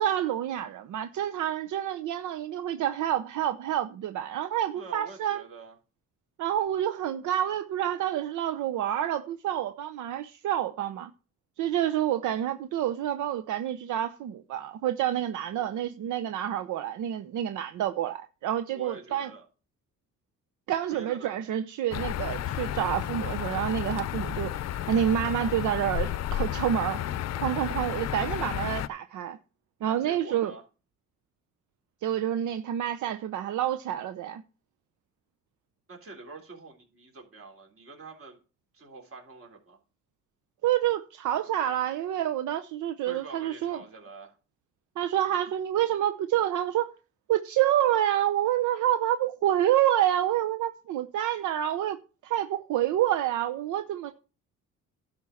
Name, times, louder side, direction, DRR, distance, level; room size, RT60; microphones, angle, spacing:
voice 1, 0.0-5.4 6.4-11.1 11.6-19.3 20.7-24.5 24.9-27.0 27.4-29.4 29.8-30.5 32.0-34.4 40.6-43.8 45.0-46.9 47.3-54.1, right 11 dB, 75° right, 0.7 m, -28 dB
voice 2, 4.7-5.8 15.5-15.8 18.7-19.5 20.9-21.3 29.8-30.6 35.9-38.4 38.7-39.8 41.6-41.8 43.0-44.4, right 3 dB, 45° right, 3.7 m, -46 dB
sound 1, 21.9-28.9, left 11 dB, 60° left, 0.6 m, -32 dB
11.0 x 4.6 x 7.0 m
cardioid pair, 90°, 30 cm